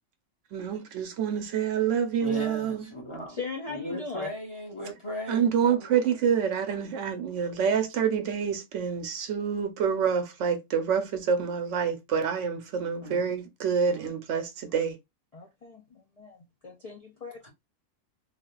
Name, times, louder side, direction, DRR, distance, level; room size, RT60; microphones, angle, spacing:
voice 1, 0.5-2.9 5.3-15.0, right 7 dB, 70° right, 1.0 m, -27 dB
voice 2, 2.2-3.4 3.6-5.9 6.9-7.0 13.0-13.4 13.8-14.1 17.4-17.5, left 1 dB, 25° left, 1.1 m, -38 dB
voice 3, 3.3-4.3 15.3-17.3, left 4 dB, 60° left, 0.4 m, -39 dB
3.4 x 2.3 x 2.3 m
omnidirectional pair, 1.4 m